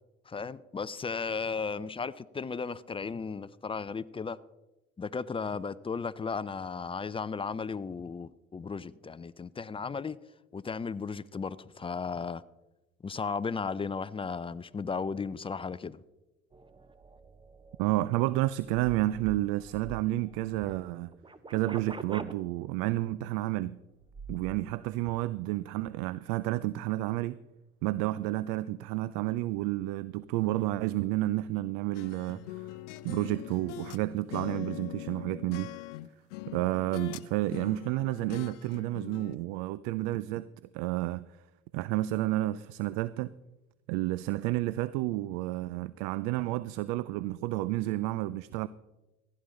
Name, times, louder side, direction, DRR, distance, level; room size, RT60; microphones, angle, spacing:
voice 1, 0.3-4.4 5.0-10.2 10.5-12.4 13.0-16.0, left 5 dB, 15° left, 0.4 m, -35 dB
sound 1, 16.5-20.7 21.1-22.3 24.0-24.6 25.0-25.2, right 3 dB, 15° right, 0.8 m, -46 dB
voice 2, 17.8-21.1 21.5-23.8 24.3-27.4 27.8-32.7 33.0-35.7 36.5-40.5 40.7-41.2 41.7-43.3 43.9-48.7, right 17 dB, 70° right, 0.5 m, -30 dB
sound 2, 31.9-34.0 34.3-37.3 37.5-39.4, left 15 dB, 80° left, 0.6 m, -42 dB
15.5 x 10.5 x 3.8 m
hypercardioid pair, 65°, 35 cm